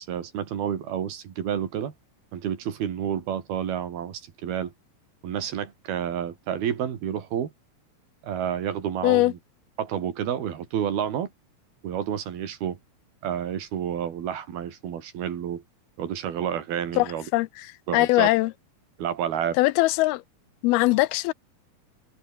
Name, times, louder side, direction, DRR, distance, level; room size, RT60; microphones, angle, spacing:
voice 1, 0.0-1.9 2.3-4.7 5.2-7.5 8.2-9.4 9.8-11.3 11.8-12.8 13.2-15.6 16.0-17.3 17.9-18.3 19.0-19.6, right 9 dB, 75° right, 4.4 m, -30 dB
voice 2, 17.0-17.5 17.9-18.5 19.6-20.2 20.6-21.3, left 20 dB, 80° left, 2.5 m, -21 dB
open air
omnidirectional pair, 4.5 m